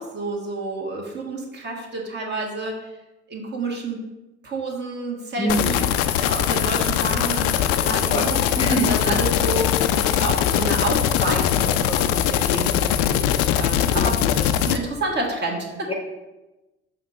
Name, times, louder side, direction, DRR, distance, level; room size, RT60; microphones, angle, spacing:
voice 1, 0.0-2.9 3.3-4.0 4.4-5.9 6.2-15.9, right 2 dB, 30° right, 0 dB, 1.4 m, -29 dB
voice 2, 5.4-5.7 8.1-8.3 8.6-8.9 13.9-14.1 15.9-16.0, right 1 dB, 15° left, 1 dB, 0.8 m, -24 dB
sound 1, 5.5-14.8, left 10 dB, 45° left, 0.4 m, -21 dB
6.8 x 2.9 x 5.3 m, 1.1 s
figure-of-eight pair, 55°, 33 cm